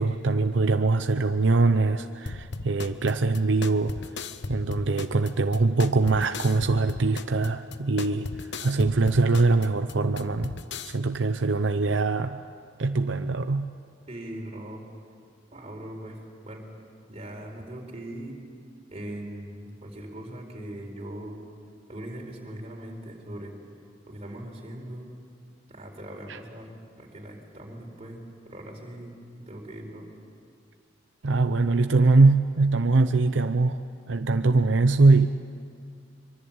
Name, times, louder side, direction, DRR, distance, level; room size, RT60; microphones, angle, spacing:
voice 1, 0.0-3.9 4.5-10.6 10.8-12.4 12.8-13.7 26.3-26.4 31.2-33.8 34.1-35.3, right 3 dB, 80° right, 8 dB, 0.7 m, -22 dB
sound 1, 2.3-10.9, left 3 dB, 65° left, 1.1 m, -37 dB
voice 2, 14.1-14.9 15.5-16.7 17.1-18.4 18.9-21.4 21.9-23.5 24.0-25.1 25.7-26.7 27.0-30.1, right 1 dB, 35° right, 1 dB, 4.4 m, -40 dB
24.5 x 24.0 x 8.8 m, 2.3 s
head